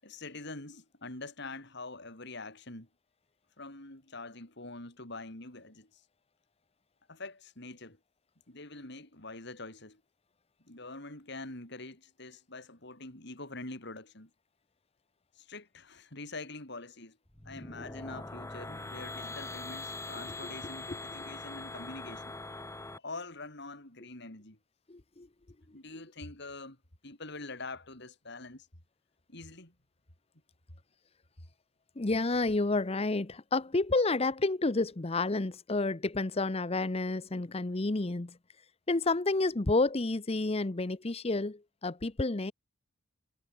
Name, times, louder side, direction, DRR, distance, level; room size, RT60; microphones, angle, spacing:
voice 1, 0.0-2.9 3.6-6.0 7.1-8.0 8.5-10.0 10.6-14.3 15.3-17.2 17.4-22.3 23.0-24.6 25.7-26.8 27.0-28.7 29.3-29.7, left 2 dB, 60° left, 6.0 m, -45 dB
sound 1, 17.3-23.0, left 2 dB, 15° left, 1.3 m, -42 dB
voice 2, 24.9-25.3 32.0-38.4 38.9-42.5, left 3 dB, 30° left, 0.8 m, -30 dB
head